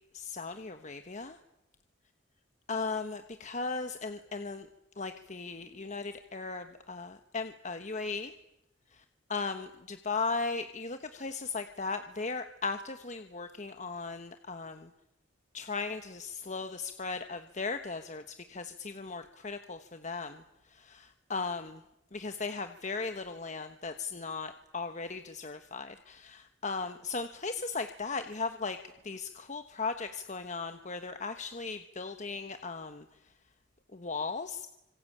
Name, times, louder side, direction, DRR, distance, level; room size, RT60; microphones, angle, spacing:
voice 1, 0.1-1.4 2.7-4.7 5.0-8.3 9.3-14.9 15.5-18.2 18.5-20.4 20.9-21.8 22.1-28.8 29.0-33.0 33.9-34.6, left 4 dB, 40° left, 8 dB, 1.2 m, -37 dB
26.0 x 25.0 x 8.7 m, 0.85 s
head